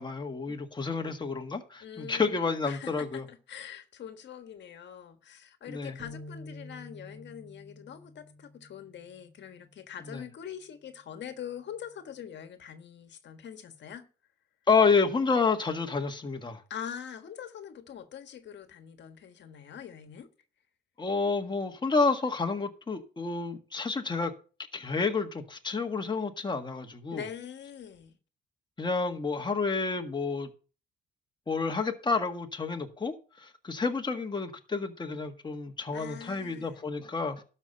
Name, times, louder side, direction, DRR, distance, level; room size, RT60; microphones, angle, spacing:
voice 1, 0.0-3.2 5.7-6.0 10.1-10.2 14.7-16.6 21.0-24.3 24.7-27.2 28.8-30.5 31.5-37.4, left 4 dB, 20° left, 1.7 m, -29 dB
voice 2, 1.8-14.0 16.7-20.3 27.1-28.2 35.9-36.8, left 8 dB, 65° left, 1.6 m, -43 dB
sound 1, 6.0-9.5, left 2 dB, 45° right, 2.7 m, -48 dB
12.0 x 5.7 x 6.6 m
cardioid pair, 90°, 20 cm